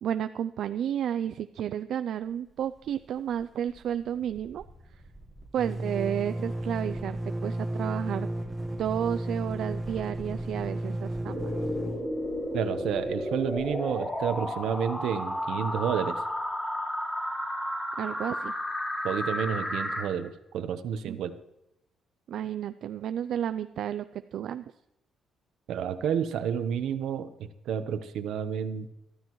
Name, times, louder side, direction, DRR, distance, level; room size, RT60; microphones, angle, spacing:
voice 1, 0.0-4.6 4.9-5.0 5.5-8.3 8.8-11.5 18.0-18.5 21.1-21.2 22.3-24.7, right 9 dB, 65° right, 11 dB, 0.4 m, -32 dB
sound 1, 2.5-3.0 3.3-3.4 3.7-14.3, right 1 dB, 15° right, 1.4 m, -35 dB
sound 2, 11.2-20.0, left 1 dB, 15° left, 3.2 m, -32 dB
voice 2, 12.5-16.2 19.0-21.4 25.7-27.3 27.7-28.9, right 8 dB, 80° right, 10 dB, 1.0 m, -30 dB
23.0 x 13.0 x 3.1 m, 0.87 s
cardioid pair, 160°, 0 cm